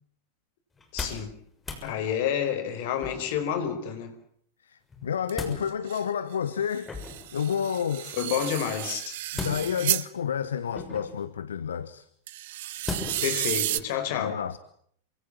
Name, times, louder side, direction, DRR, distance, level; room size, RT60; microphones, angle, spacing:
sound 1, 0.8-1.3 1.6-1.9 3.0-3.4 4.9-5.6 6.8-7.3 9.3-10.0 10.7-11.2 12.8-13.3 13.8-13.9, left 3 dB, 15° left, 6.7 m, -36 dB
voice 1, 0.9-1.3 1.8-4.1 8.1-9.2 13.2-14.4, left 9 dB, 50° left, 4.7 m, -29 dB
voice 2, 4.6-6.9 7.3-8.1 9.3-12.1 14.1-14.6, left 8 dB, 65° left, 1.2 m, -30 dB
sound 2, 5.3-5.4 5.7-6.0 6.7-10.1 12.3-13.8, right 15 dB, 55° right, 1.1 m, -32 dB
28.0 x 25.0 x 7.5 m
figure-of-eight pair, 90°, 0 cm